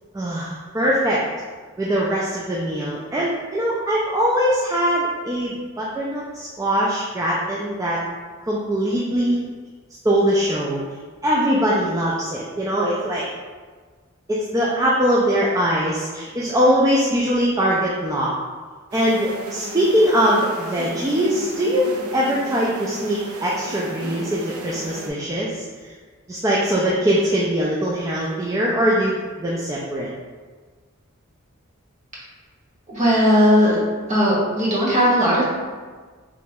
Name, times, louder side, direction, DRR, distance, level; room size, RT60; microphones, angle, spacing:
voice 1, 0.1-1.2 1.8-8.0 8.4-9.4 10.0-10.8 11.2-13.3 14.3-18.3 18.9-21.9 22.1-25.9 26.3-29.1 29.4-30.1, equal, 15° right, -6 dB, 0.3 m, -21 dB
sound 1, 18.9-25.1, right 1 dB, 80° right, 0.5 m, -34 dB
voice 2, 32.9-33.8 34.1-35.4, equal, 35° right, -6 dB, 1.1 m, -17 dB
3.1 x 2.9 x 3.5 m, 1.5 s
head